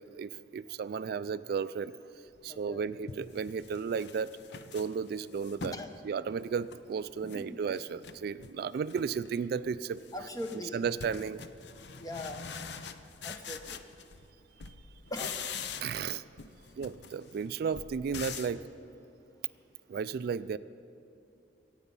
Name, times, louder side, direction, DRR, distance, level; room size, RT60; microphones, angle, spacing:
voice 1, 0.0-1.9 2.4-4.3 4.7-5.8 6.0-10.0 10.7-11.4 15.8-16.2 16.8-18.6 19.9-20.6, right 6 dB, 55° right, 15 dB, 0.3 m, -34 dB
sound 1, 2.4-2.5 3.1-5.9 6.3-7.4 7.7-8.6 8.9-9.3 9.6-14.3 14.6-16.1 16.4-18.6, left 6 dB, 65° left, 0.7 m, -44 dB
voice 2, 2.5-2.8 5.7-5.9 7.2-7.4 10.1-10.8 12.0-12.4 13.2-13.8 15.1-15.4, left 1 dB, 20° left, 6 dB, 0.9 m, -40 dB
23.0 x 9.0 x 5.5 m, 2.6 s
head